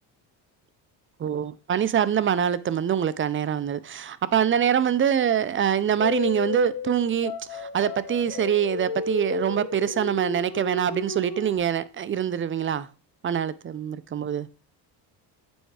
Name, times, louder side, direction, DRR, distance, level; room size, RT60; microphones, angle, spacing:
voice 1, 1.2-12.9 13.2-14.5, right 9 dB, 30° right, 0.5 m, -24 dB
sound 1, 6.0-11.6, left 5 dB, 55° left, 1.7 m, -33 dB
8.0 x 4.5 x 4.7 m
cardioid pair, 100°, 44 cm